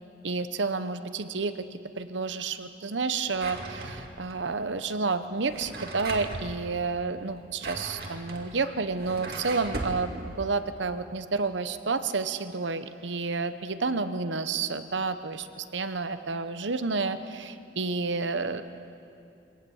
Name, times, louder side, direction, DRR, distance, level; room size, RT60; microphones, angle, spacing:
voice 1, 0.2-18.6, right 4 dB, 85° right, 11 dB, 1.0 m, -30 dB
Drawer open or close, 3.3-4.3 5.4-6.5 7.4-10.0, right 2 dB, 55° right, 2.2 m, -38 dB
24.5 x 18.0 x 7.2 m, 2.6 s
head